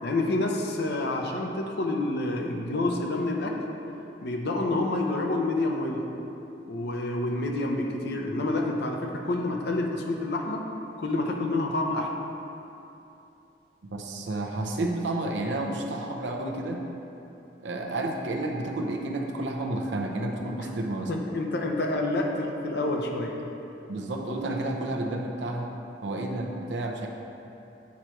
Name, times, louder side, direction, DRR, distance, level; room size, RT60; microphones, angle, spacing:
voice 1, 0.0-3.6 4.2-6.0 6.7-10.6 11.0-12.1 20.6-20.7 21.1-23.3, left 2 dB, 65° left, 1 dB, 0.6 m, -28 dB
voice 2, 13.9-16.8 17.6-21.3 23.9-25.7 26.0-27.1, right 2 dB, 80° right, 1 dB, 0.6 m, -31 dB
8.2 x 4.4 x 3.0 m, 2.9 s
head